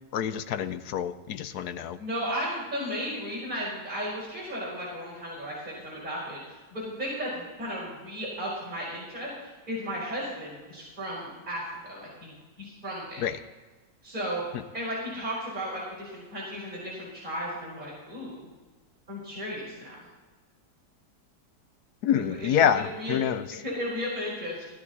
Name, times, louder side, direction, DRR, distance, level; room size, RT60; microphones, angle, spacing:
voice 1, 0.1-2.0 13.2-13.4 22.0-23.4, left 9 dB, 70° left, 11 dB, 1.2 m, -27 dB
voice 2, 2.0-13.2 14.0-14.4 14.7-18.5 19.1-19.9 22.1-23.2 23.6-24.6, equal, 25° right, -7 dB, 4.8 m, -35 dB
16.5 x 11.5 x 4.1 m, 1.3 s
omnidirectional pair, 1.8 m